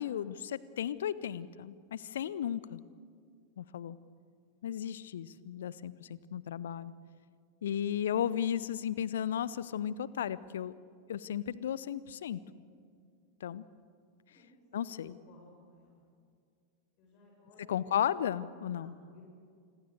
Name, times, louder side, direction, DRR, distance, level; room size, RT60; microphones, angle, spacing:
voice 1, 0.0-2.8 3.6-4.0 4.6-6.9 7.6-10.7 11.1-12.4 13.4-13.6 14.7-15.2 17.7-18.9, left 9 dB, 60° left, 19 dB, 0.7 m, -34 dB
voice 2, 14.3-14.8 15.3-16.0 17.0-17.7 18.7-19.2, left 2 dB, 40° left, -1 dB, 6.8 m, -60 dB
28.0 x 21.5 x 6.7 m, 2.2 s
figure-of-eight pair, 90°, 0 cm